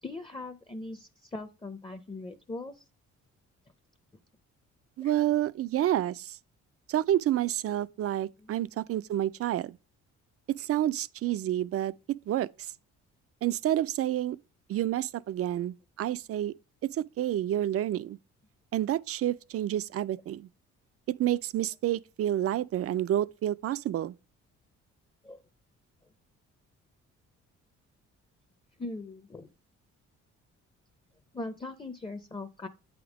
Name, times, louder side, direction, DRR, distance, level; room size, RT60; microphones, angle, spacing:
voice 1, 0.0-2.8 5.0-5.1 8.4-8.7 25.2-25.4 28.8-29.5 31.3-32.7, left 2 dB, 15° left, 0.6 m, -40 dB
voice 2, 5.0-6.4 6.9-9.8 10.5-11.9 12.3-12.5 13.4-14.4 14.7-16.5 16.9-18.2 18.7-20.5 21.1-24.1, right 12 dB, 50° right, 0.4 m, -29 dB
8.5 x 3.6 x 4.7 m
cardioid pair, 90°, 30 cm